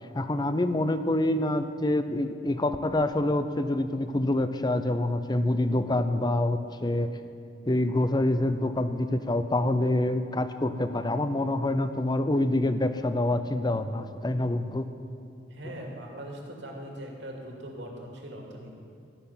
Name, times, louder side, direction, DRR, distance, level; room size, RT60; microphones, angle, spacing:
voice 1, 0.1-7.1 7.6-14.9, left 1 dB, 25° left, 10 dB, 0.6 m, -26 dB
voice 2, 15.5-18.8, right 1 dB, 80° right, 0 dB, 2.5 m, -41 dB
14.5 x 6.9 x 10.0 m, 2.4 s
head